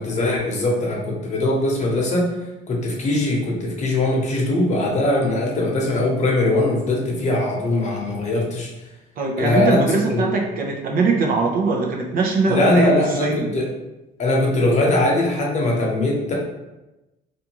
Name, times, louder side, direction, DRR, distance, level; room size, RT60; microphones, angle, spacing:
voice 1, 0.0-2.3 2.7-8.7 9.4-9.8 10.1-10.3 12.5-13.7 14.2-16.3, left 2 dB, 45° left, -2 dB, 0.9 m, -21 dB
voice 2, 9.2-13.5, right 3 dB, 60° right, 1 dB, 0.6 m, -21 dB
2.6 x 2.4 x 2.9 m, 1.0 s
cardioid pair, 110°, 17 cm